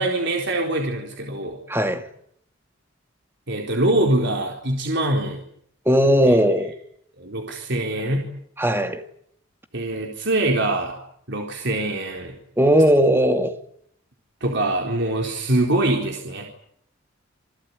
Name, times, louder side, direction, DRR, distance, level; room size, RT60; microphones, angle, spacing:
voice 1, 0.0-1.6 3.5-5.5 6.2-6.4 7.2-8.3 9.7-11.0 11.3-12.3 14.4-16.5, right 1 dB, 60° right, 4.2 m, -23 dB
voice 2, 1.7-2.1 5.9-6.7 8.6-9.0 12.6-13.5, equal, 10° right, 2.3 m, -18 dB
27.5 x 19.5 x 9.8 m
head